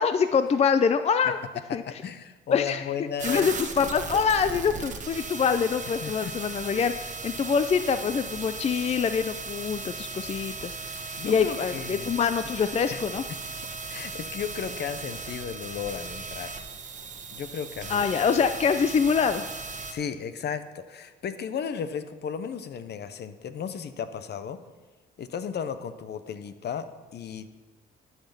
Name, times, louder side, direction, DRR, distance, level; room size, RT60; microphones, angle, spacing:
voice 1, 0.0-1.4 1.7-1.8 2.5-2.8 3.2-10.8 11.2-13.2 17.9-19.5, left 6 dB, 35° left, 10 dB, 0.4 m, -25 dB
voice 2, 1.7-3.5 6.0-6.3 11.2-12.1 12.9-13.0 13.7-16.5 17.3-18.1 19.9-24.6 25.2-27.5, left 7 dB, 55° left, 11 dB, 0.8 m, -34 dB
sound 1, 3.2-19.9, right 4 dB, 40° right, 1.2 m, -37 dB
12.5 x 5.8 x 5.9 m, 1.2 s
cardioid pair, 90°, 20 cm